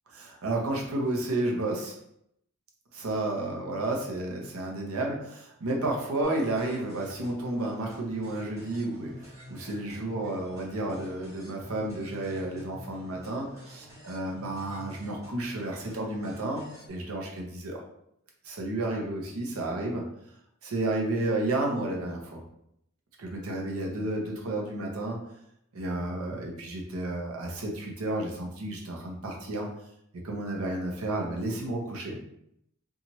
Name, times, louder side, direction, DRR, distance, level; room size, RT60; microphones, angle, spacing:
voice 1, 0.2-1.9 2.9-17.8 18.4-20.1 20.6-22.4 23.2-25.2 25.7-29.7 30.2-32.2, right 2 dB, 85° right, 0 dB, 0.7 m, -31 dB
sound 1, 6.2-16.9, left 1 dB, 15° right, 1.0 m, -48 dB
2.9 x 2.4 x 2.7 m, 0.75 s
head